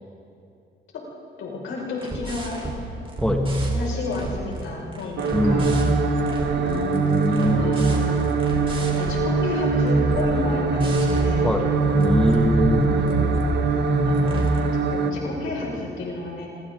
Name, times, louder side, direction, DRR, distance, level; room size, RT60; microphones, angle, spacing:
voice 1, 1.4-2.6 3.7-5.7 6.7-7.0 7.4-8.3 8.8-11.5 12.7-13.4 14.1-14.5 14.9-16.5, left 3 dB, 80° left, -3 dB, 6.1 m, -32 dB
sound 1, 2.0-2.8 3.0-4.6 4.9-9.2 9.6-10.3 10.7-11.3 11.7-13.5 13.9-14.6, right 2 dB, 25° right, 4.6 m, -25 dB
voice 2, 3.2-3.6 5.3-5.7 6.6-7.8 11.4-11.7 12.0-12.8 15.1-15.3 15.6-15.8, left 1 dB, 5° left, 1 dB, 2.4 m, -24 dB
sound 2, 5.2-15.1, right 4 dB, 60° right, 1.4 m, -23 dB
28.5 x 26.0 x 4.0 m, 2.7 s
cardioid pair, 90°, 20 cm